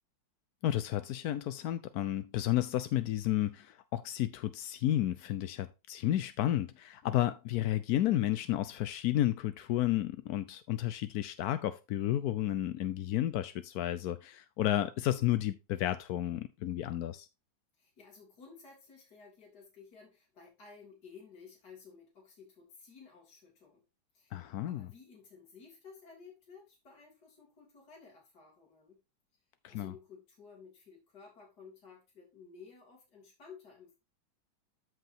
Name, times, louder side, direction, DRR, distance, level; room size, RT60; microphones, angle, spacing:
voice 1, 0.6-17.3 24.3-24.9 29.6-29.9, left 13 dB, 70° left, 0.9 m, -32 dB
voice 2, 17.8-23.8 24.1-29.0 29.7-34.0, left 5 dB, 50° left, 3.4 m, -55 dB
13.5 x 5.0 x 2.7 m
omnidirectional pair, 2.2 m